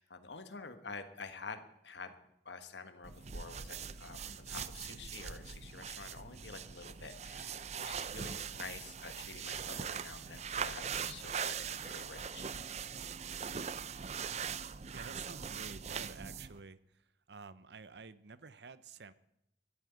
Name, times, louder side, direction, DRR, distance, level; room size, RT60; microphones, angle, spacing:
voice 1, 0.0-2.1 2.4-12.5, left 4 dB, 75° left, 8 dB, 1.5 m, -48 dB
sound 1, 3.0-16.6, right 7 dB, 40° right, 0.5 m, -41 dB
voice 2, 14.9-16.8 17.3-19.1, right 4 dB, 70° right, 16 dB, 0.7 m, -50 dB
13.5 x 9.7 x 9.2 m, 0.80 s
head